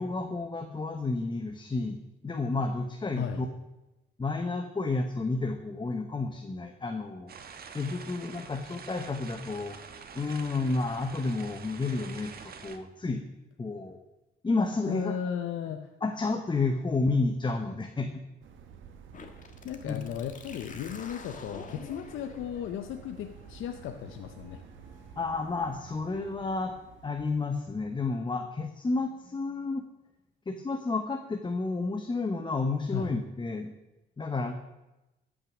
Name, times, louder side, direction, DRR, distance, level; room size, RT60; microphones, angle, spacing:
voice 1, 0.0-3.5 4.2-7.3 7.7-9.8 10.1-13.2 13.6-14.0 14.4-15.2 16.0-18.1 19.8-20.0 25.2-26.7 27.0-29.8 30.5-33.7 34.2-34.5, left 3 dB, 25° left, 6 dB, 1.0 m, -31 dB
sound 1, 7.3-12.8, right 6 dB, 50° right, 1.2 m, -46 dB
voice 2, 14.9-15.9 19.6-24.6 32.9-33.1, left 9 dB, 80° left, 6 dB, 0.7 m, -35 dB
sound 2, 18.4-28.0, right 7 dB, 75° right, 1.3 m, -51 dB
sound 3, 19.1-26.7, left 4 dB, 40° left, 1.6 m, -50 dB
13.5 x 6.3 x 6.2 m, 1.0 s
cardioid pair, 90°, 20 cm